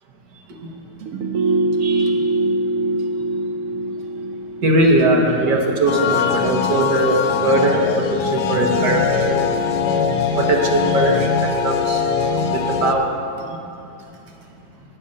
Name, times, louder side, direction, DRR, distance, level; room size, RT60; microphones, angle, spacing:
sound 1, 1.0-6.2 6.5-6.6, right 2 dB, 60° right, 1.0 m, -23 dB
voice 1, 1.8-2.2 4.6-12.0 12.5-13.1, right 2 dB, 80° right, 1 dB, 1.8 m, -20 dB
sound 2, 5.9-12.9, left 6 dB, 75° left, 1.1 m, -21 dB
10.0 x 7.0 x 6.4 m, 2.7 s
omnidirectional pair, 1.8 m